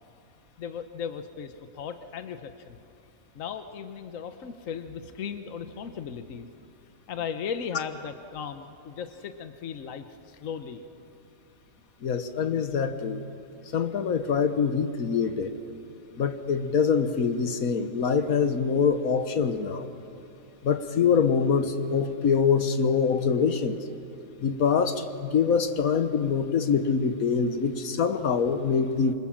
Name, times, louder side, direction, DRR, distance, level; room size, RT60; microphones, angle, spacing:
voice 1, 0.6-2.8 3.3-6.5 7.1-10.8, left 7 dB, 70° left, 8 dB, 1.4 m, -37 dB
voice 2, 12.0-13.2 13.7-15.5 16.2-19.9 20.6-23.8 24.4-29.1, left 6 dB, 85° left, 8 dB, 1.6 m, -24 dB
26.5 x 25.0 x 7.4 m, 2.8 s
omnidirectional pair, 1.5 m